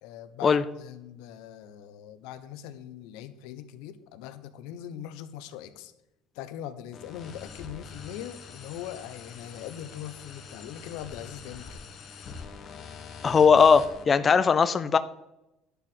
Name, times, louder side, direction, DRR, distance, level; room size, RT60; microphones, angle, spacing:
voice 1, 0.0-5.9 6.3-11.8, left 10 dB, 85° left, 11 dB, 1.0 m, -41 dB
sound 1, 6.9-14.0, left 5 dB, 40° left, 1.6 m, -44 dB
voice 2, 13.2-15.0, left 6 dB, 25° left, 13 dB, 0.5 m, -19 dB
11.5 x 4.8 x 8.0 m, 0.90 s
cardioid pair, 140°, 0 cm